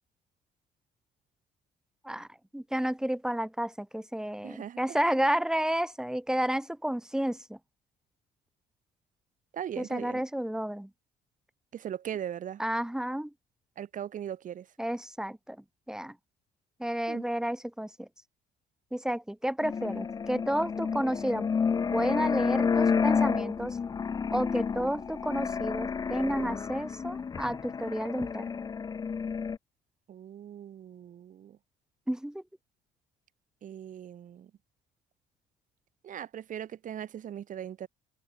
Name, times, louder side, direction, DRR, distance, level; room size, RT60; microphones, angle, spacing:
voice 1, 2.5-7.6 9.8-10.9 12.6-13.3 14.8-15.6 15.9-16.1 16.8-18.1 18.9-21.5 21.9-23.8 24.3-28.4 32.1-32.4, right 1 dB, 5° right, 1.2 m, -31 dB
voice 2, 4.4-5.0 9.5-10.2 11.7-12.6 13.8-14.7 17.1-17.3 30.1-31.6 33.6-34.5 36.0-37.9, right 10 dB, 45° right, 2.3 m, -39 dB
sound 1, 19.6-29.6, left 6 dB, 20° left, 0.5 m, -30 dB
open air
cardioid pair, 135°, 18 cm